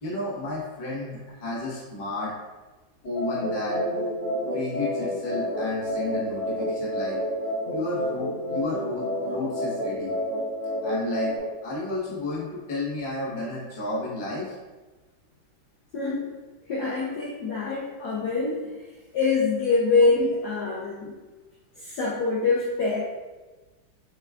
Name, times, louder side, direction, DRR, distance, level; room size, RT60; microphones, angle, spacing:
voice 1, 0.0-2.3 3.0-3.8 4.5-7.2 7.7-10.1 10.8-11.3 11.6-14.6, left 2 dB, 35° left, -7 dB, 0.9 m, -32 dB
sound 1, 3.2-11.4, equal, 85° left, 2.3 m, -29 dB
voice 2, 15.9-16.3 16.7-18.7 19.1-21.1 21.8-23.0, left 3 dB, 70° left, -6 dB, 1.0 m, -25 dB
6.5 x 2.3 x 2.3 m, 1.2 s
omnidirectional pair, 2.1 m